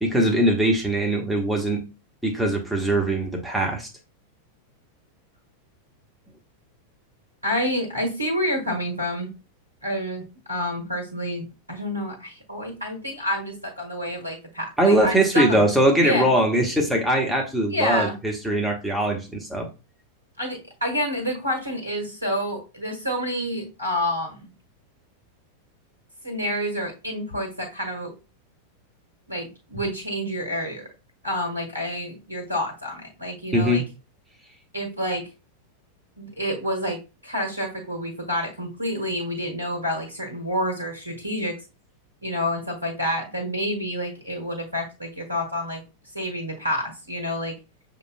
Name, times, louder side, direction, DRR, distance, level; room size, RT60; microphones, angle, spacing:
voice 1, 0.0-1.8 2.2-3.9 14.8-19.7 33.5-33.9, right 1 dB, ahead, -1 dB, 1.2 m, -21 dB
voice 2, 7.4-9.3 9.8-10.2 10.5-11.4 11.7-15.6 16.0-16.3 16.9-17.0 17.7-18.1 20.4-24.5 26.2-28.1 29.3-30.9 31.2-33.8 34.7-35.3 36.2-37.0 37.2-41.6 42.2-45.8 46.1-47.5, equal, 85° right, 2 dB, 1.5 m, -28 dB
6.9 x 3.0 x 2.2 m, 0.30 s
figure-of-eight pair, 90°, 0 cm